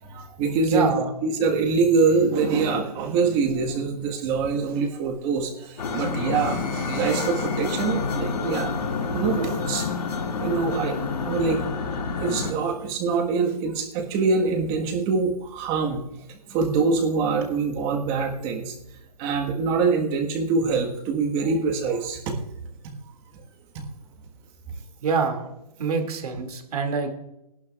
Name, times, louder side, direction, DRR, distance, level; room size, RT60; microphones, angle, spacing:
voice 1, 0.0-1.0 1.2-8.7 9.1-9.9 10.4-11.0 11.2-11.6 12.2-16.0 16.3-18.7 19.2-22.4 22.8-22.9 23.7-23.8, right 4 dB, 25° right, 3 dB, 1.5 m, -24 dB
voice 2, 0.7-1.1 25.0-25.5 25.8-27.1, right 5 dB, 70° right, 5 dB, 2.4 m, -25 dB
sound 1, 5.8-12.5, left 4 dB, 85° left, 2.4 m, -28 dB
18.0 x 11.5 x 2.4 m, 0.87 s
hypercardioid pair, 155°, 20 cm